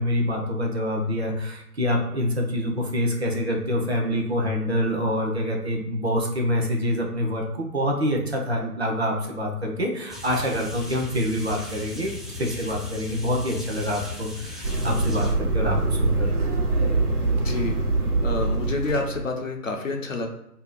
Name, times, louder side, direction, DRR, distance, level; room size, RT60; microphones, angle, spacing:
voice 1, 0.0-16.4, equal, 40° right, 0 dB, 0.7 m, -26 dB
sound 1, 10.1-15.3, left 2 dB, ahead, 0.3 m, -37 dB
sound 2, 14.6-19.3, right 2 dB, 65° right, 1.0 m, -24 dB
voice 2, 17.3-17.8 18.2-20.3, left 3 dB, 55° left, 3 dB, 0.6 m, -28 dB
2.8 x 2.3 x 3.9 m, 0.81 s
figure-of-eight pair, 150°, 48 cm